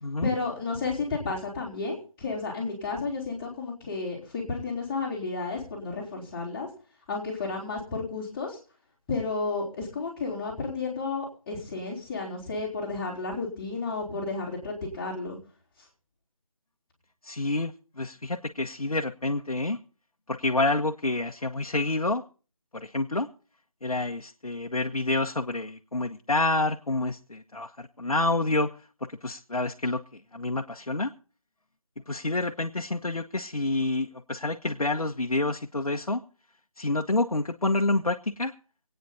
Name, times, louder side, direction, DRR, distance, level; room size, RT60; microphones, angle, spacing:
voice 1, 0.2-6.7 7.1-8.6 9.1-15.4, left 3 dB, 10° left, -7 dB, 3.6 m, -32 dB
voice 2, 17.2-19.8 20.3-22.2 22.7-23.3 23.8-28.7 29.2-31.1 32.1-36.2 36.8-38.5, left 2 dB, 85° left, 3 dB, 1.2 m, -28 dB
25.0 x 9.3 x 4.1 m, 0.38 s
figure-of-eight pair, 165°, 18 cm